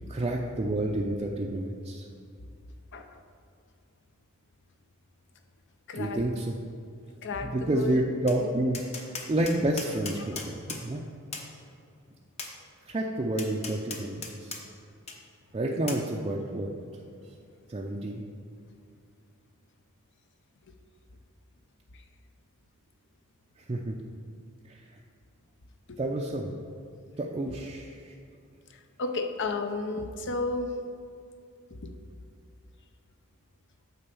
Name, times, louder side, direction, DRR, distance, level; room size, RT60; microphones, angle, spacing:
voice 1, 0.1-2.1 5.9-6.6 7.5-11.1 12.9-14.6 15.5-16.7 17.7-18.2 23.7-24.0 24.7-24.8 26.0-26.5 27.2-28.1, right 1 dB, 25° right, -1 dB, 0.5 m, -29 dB
voice 2, 5.9-6.2 7.2-8.0 8.4-8.5 25.9-26.0 28.7-30.7 31.7-31.9, left 3 dB, 55° left, 6 dB, 0.7 m, -33 dB
Tap, 8.3-8.4 8.7-10.8 11.3-11.5 12.4-12.5 13.4-14.6 15.1-15.2 15.9-16.0, left 4 dB, 30° left, 0.9 m, -37 dB
8.7 x 3.9 x 6.9 m, 2.4 s
head